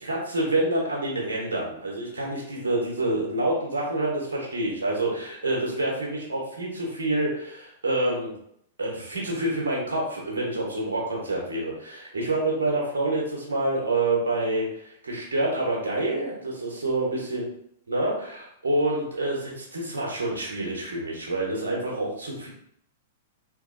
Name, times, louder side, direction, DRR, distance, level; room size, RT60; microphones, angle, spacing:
voice 1, 0.0-8.3 8.8-17.4 17.9-22.5, right 2 dB, 75° right, -2 dB, 0.9 m, -27 dB
3.2 x 2.9 x 2.5 m, 0.71 s
figure-of-eight pair, 100°, 0 cm